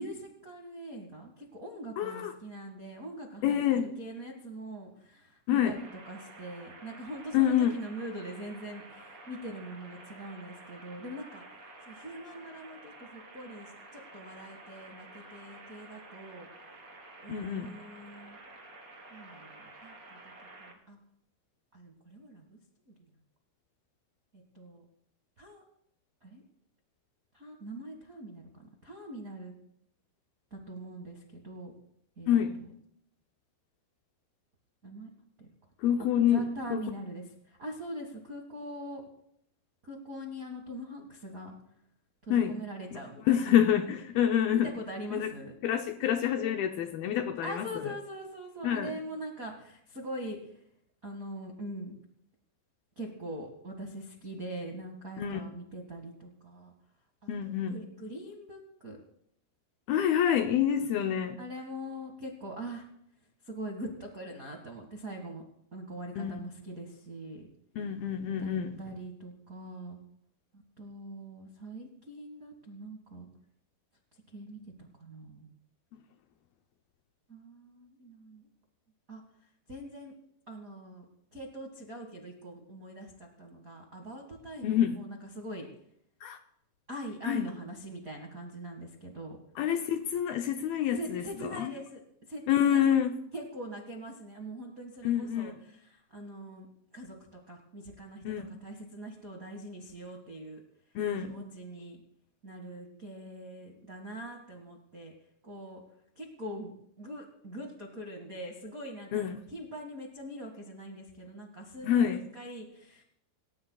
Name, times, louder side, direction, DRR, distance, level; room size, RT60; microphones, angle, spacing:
voice 1, 0.0-11.4 11.8-16.5 17.2-18.4 19.1-20.3 20.6-21.0 21.7-22.6 22.9-23.1 24.3-24.8 25.4-25.6 26.2-26.4 27.3-29.5 30.5-31.7 32.2-32.7 34.8-35.1 35.4-35.5 36.0-39.0 39.8-41.5 42.2-43.5 44.5-45.6 47.4-50.6 51.0-51.9 52.9-56.7 57.2-59.0 61.4-62.9 63.4-65.4 65.7-67.5 68.4-70.0 70.5-73.3 74.3-75.5 77.3-78.5 79.1-79.2 79.7-80.1 80.5-81.0 81.3-85.7 86.9-89.4 90.9-92.0 92.3-92.9 93.3-96.7 96.9-100.6 101.2-102.0 102.4-105.1 105.4-105.8 106.1-113.0, right 1 dB, 65° right, 0 dB, 0.8 m, -43 dB
voice 2, 2.0-2.3 3.4-3.9 5.5-5.8 7.3-7.8 17.3-17.7 32.3-32.6 35.8-36.8 42.3-42.6 43.3-44.7 45.1-45.3 45.6-47.7 48.6-48.9 55.2-55.5 57.3-57.8 59.9-61.4 66.2-66.3 67.8-68.8 75.9-76.0 84.6-85.0 86.2-86.4 87.3-87.5 89.6-91.7 92.5-93.1 95.0-95.5 98.3-98.6 101.0-101.4 109.1-109.4 111.8-112.2, left 9 dB, 75° left, 5 dB, 2.3 m, -27 dB
sound 1, 5.7-20.7, right 2 dB, 25° right, 2.4 m, -51 dB
29.0 x 14.5 x 2.3 m, 0.70 s
omnidirectional pair, 5.0 m